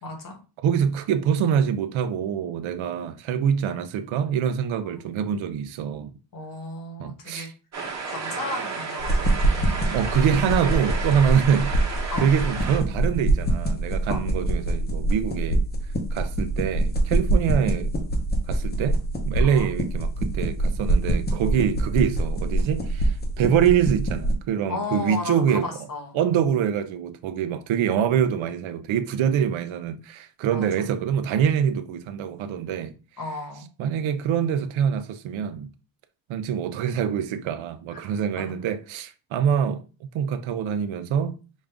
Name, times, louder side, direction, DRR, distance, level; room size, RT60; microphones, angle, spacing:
voice 1, 0.0-0.4 4.8-5.2 6.3-7.5 8.0-9.8 12.1-12.2 14.1-14.2 19.4-19.7 24.7-26.2 30.5-30.9 33.2-33.7 37.9-38.0 38.4-38.5, left 3 dB, 40° left, 1.2 m, -35 dB
voice 2, 0.6-6.1 7.0-7.5 9.9-11.7 12.2-15.6 16.1-17.9 18.5-19.0 19.3-25.7 26.1-32.9 33.8-35.7 36.3-39.8 40.1-41.3, right 8 dB, 75° right, 0.6 m, -25 dB
sound 1, 7.7-12.8, right 4 dB, 35° right, 1.3 m, -32 dB
sound 2, 9.0-24.3, right 1 dB, 20° left, 0.7 m, -25 dB
5.2 x 2.5 x 3.4 m
wide cardioid pair, 155°, 48 cm